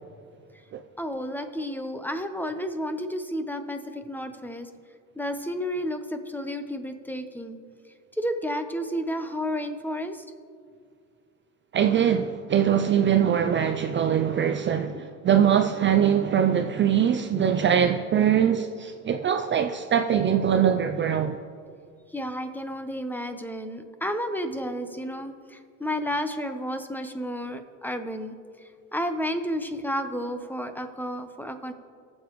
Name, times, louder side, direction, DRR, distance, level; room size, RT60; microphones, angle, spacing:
voice 1, 1.0-4.7 5.2-7.6 8.1-10.3 14.9-15.0 22.1-28.4 28.9-31.7, equal, 5° left, 0.8 m, -31 dB
voice 2, 11.7-21.4, right 8 dB, 35° right, 0.5 m, -22 dB
21.0 x 7.1 x 3.1 m
supercardioid pair, 90°, 36 cm